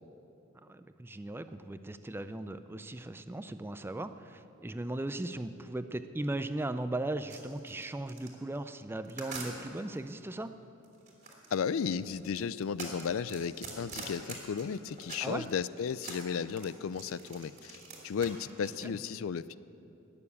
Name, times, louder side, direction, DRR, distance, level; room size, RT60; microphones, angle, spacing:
voice 1, 0.6-10.5 15.2-15.5 18.8-19.0, right 1 dB, 10° right, 10 dB, 0.4 m, -37 dB
sound 1, 7.3-10.0 10.8-15.5 15.8-18.9, right 4 dB, 35° right, 2.8 m, -45 dB
voice 2, 11.5-17.8 18.0-19.6, left 6 dB, 70° left, 17 dB, 0.4 m, -34 dB
19.0 x 7.0 x 8.4 m, 2.9 s
head